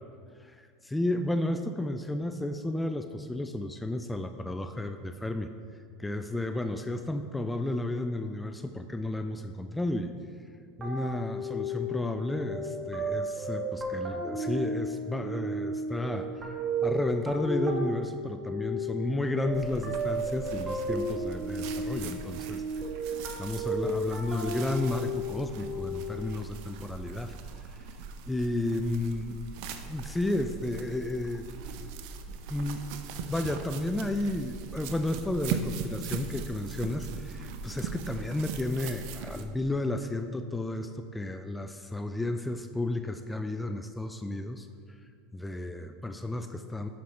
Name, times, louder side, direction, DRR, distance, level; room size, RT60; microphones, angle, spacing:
voice 1, 0.4-5.5 6.0-10.1 10.8-16.3 16.8-22.6 23.0-27.3 27.7-27.8 28.3-29.4 29.9-31.5 32.3-32.8 33.3-45.0 45.3-46.9, left 1 dB, 10° left, 8 dB, 0.4 m, -32 dB
sound 1, 10.8-26.2, right 1 dB, 25° right, 1.7 m, -34 dB
sound 2, 19.5-39.5, right 5 dB, 60° right, 0.6 m, -40 dB
10.0 x 5.8 x 3.2 m, 2.2 s
hypercardioid pair, 90°, 0 cm